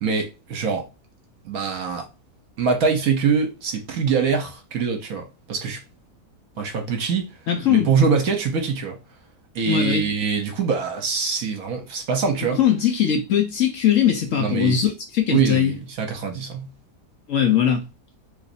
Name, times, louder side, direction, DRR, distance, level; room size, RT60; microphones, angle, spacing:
voice 1, 0.0-0.9 1.4-2.1 2.6-5.8 6.6-7.3 7.7-9.0 9.5-12.6 14.4-14.8 15.3-16.7, right 5 dB, 65° right, 1.2 m, -23 dB
voice 2, 7.5-7.9 9.7-10.1 12.5-15.7 17.3-17.8, left 9 dB, 60° left, 0.9 m, -20 dB
3.2 x 2.6 x 3.8 m
omnidirectional pair, 1.8 m